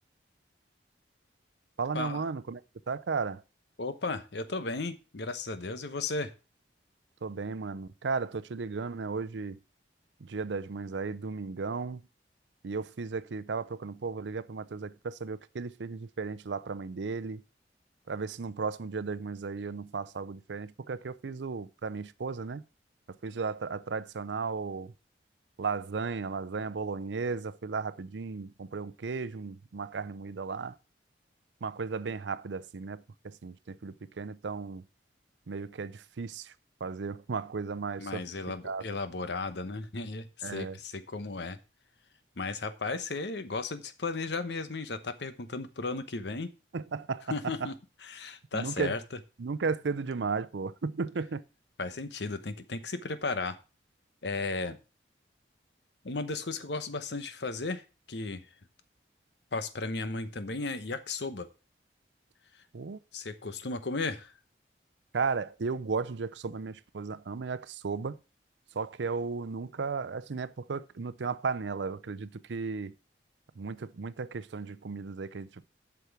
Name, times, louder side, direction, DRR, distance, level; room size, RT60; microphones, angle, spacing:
voice 1, 1.8-2.6 2.9-3.4 7.2-9.6 10.2-12.1 12.6-17.4 18.1-22.6 23.1-24.9 25.6-30.8 31.6-34.8 35.5-36.5 36.8-38.3 38.6-38.8 40.4-40.8 46.7-47.7 48.5-48.9 49.4-51.4 62.7-63.0 65.1-68.2 68.7-72.9 73.6-75.6, right 4 dB, 85° right, 0.6 m, -35 dB
voice 2, 3.8-6.3 38.0-41.6 42.4-46.5 47.3-47.7 48.1-49.0 51.8-53.6 54.2-54.8 56.0-57.8 58.1-58.5 59.5-61.5 63.1-64.3, left 3 dB, 75° left, 1.0 m, -35 dB
8.2 x 6.1 x 5.9 m
head